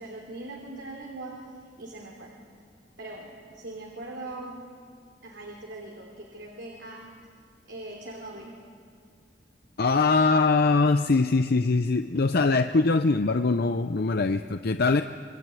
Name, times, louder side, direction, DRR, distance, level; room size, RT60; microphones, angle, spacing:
voice 1, 0.0-1.4 1.8-2.3 3.0-4.6 5.2-7.1 7.7-8.5, right 2 dB, 75° right, 0 dB, 3.3 m, -40 dB
voice 2, 9.8-15.0, left 3 dB, 60° left, 8 dB, 0.7 m, -22 dB
26.0 x 23.0 x 9.1 m, 2.1 s
head